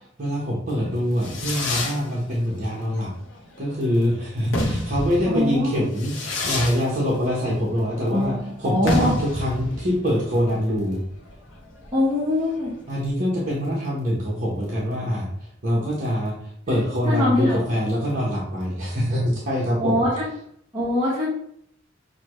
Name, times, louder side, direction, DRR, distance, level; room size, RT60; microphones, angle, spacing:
voice 1, 0.2-3.1 3.6-11.0 12.9-20.1, equal, 40° right, -6 dB, 1.2 m, -24 dB
Fireworks, 0.8-13.1, left 1 dB, 80° left, 1.0 m, -30 dB
voice 2, 5.3-5.8 8.1-8.4 8.6-9.1 11.9-12.7 16.7-16.8 17.1-17.6 19.8-20.3 20.7-21.3, left 1 dB, 25° right, -8 dB, 1.4 m, -22 dB
6.9 x 2.3 x 3.1 m, 0.66 s
head